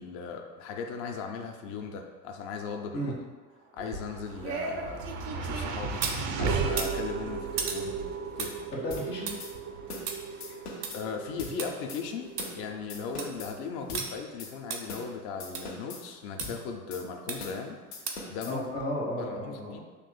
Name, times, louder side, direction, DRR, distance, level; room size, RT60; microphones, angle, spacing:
voice 1, 0.0-3.1 3.7-5.1 5.3-6.0 6.4-8.0 8.4-8.6 10.5-10.6 10.9-17.8 18.0-18.6 19.2-19.8, left 5 dB, 35° left, 3 dB, 0.5 m, -38 dB
sound 1, 3.8-6.2 6.7-11.7 12.1-12.2 12.4-12.5 12.9-13.4 13.9-14.1 14.7-14.8 15.5-15.6 16.4-16.5 17.3-17.6 18.1-18.3 18.8-18.9, right 5 dB, 85° right, 0.7 m, -37 dB
sound 2, 3.9-16.2, right 5 dB, 40° right, 0.5 m, -36 dB
voice 2, 8.7-9.3 18.5-19.8, equal, 90° left, -5 dB, 1.4 m, -33 dB
sound 3, 8.9-9.1 9.4-9.5 9.9-10.1 10.4-11.0 11.4-11.6 11.9-12.0 12.4-12.6 12.9-13.5 13.9-14.1 14.4-14.5 14.9-15.1 15.4-16.0 16.4-16.6 16.9-17.0 17.4-17.6 17.9-18.5, left 3 dB, 75° left, 1.0 m, -41 dB
6.8 x 3.0 x 2.2 m, 1.3 s
hypercardioid pair, 80°, 47 cm